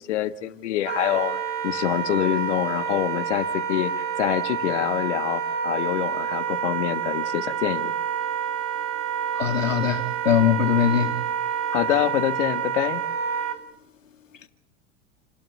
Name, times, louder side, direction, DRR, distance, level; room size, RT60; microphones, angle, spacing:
voice 1, 0.0-1.4 1.6-3.9 4.2-7.9 11.7-13.0, left 13 dB, 70° left, 1.8 m, -26 dB
Wind instrument woodwind instrument, 0.8-13.6, right 7 dB, 65° right, 5.6 m, -28 dB
voice 2, 9.4-11.2, left 8 dB, 90° left, 2.3 m, -21 dB
29.0 x 12.5 x 8.5 m
hypercardioid pair, 95°, 38 cm